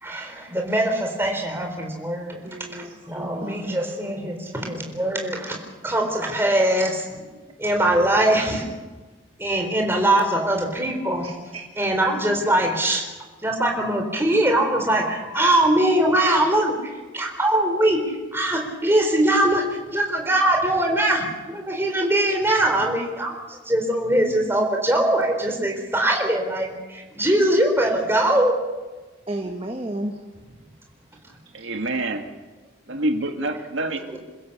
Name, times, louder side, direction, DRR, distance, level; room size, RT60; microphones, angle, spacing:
voice 1, 0.0-2.4 2.7-5.5 5.8-7.2 7.6-8.6 9.4-11.3 11.8-13.1 13.4-28.5 34.1-34.2, right 1 dB, 10° right, 2 dB, 4.2 m, -22 dB
voice 2, 2.4-3.8 11.2-11.7 29.3-30.2 31.5-31.7, right 1 dB, 30° right, 3 dB, 1.5 m, -33 dB
voice 3, 31.5-32.2 32.9-34.2, right 2 dB, 85° right, 5 dB, 2.0 m, -27 dB
28.0 x 16.0 x 7.3 m, 1.2 s
head